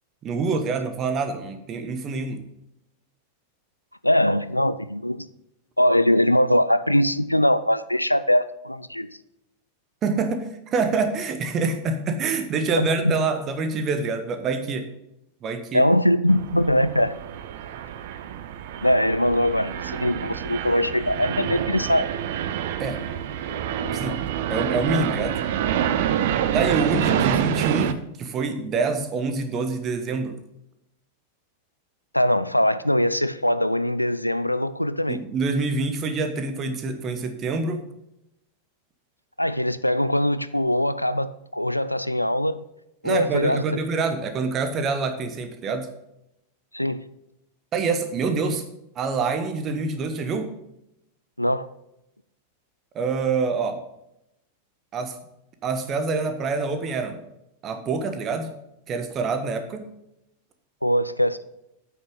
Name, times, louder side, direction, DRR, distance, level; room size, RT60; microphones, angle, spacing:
voice 1, 0.2-2.4 10.0-14.9 15.4-15.8 22.8-23.0 23.9-25.4 26.5-30.4 35.1-37.8 43.0-45.9 47.7-48.6 48.9-50.5 52.9-53.8 54.9-55.1 55.6-57.2 57.6-58.5 58.9-59.9, right 4 dB, 30° right, 7 dB, 1.3 m, -26 dB
voice 2, 4.0-5.3 5.8-9.1 12.8-13.1 15.7-17.1 18.8-22.1 32.1-35.2 39.4-42.6 43.0-43.6 46.7-47.0 51.4-51.7 60.8-61.4, equal, 90° left, 14 dB, 0.4 m, -22 dB
sound 1, 16.3-27.9, right 10 dB, 55° right, 0.6 m, -27 dB
8.8 x 6.3 x 5.5 m, 0.84 s
figure-of-eight pair, 90°, 0 cm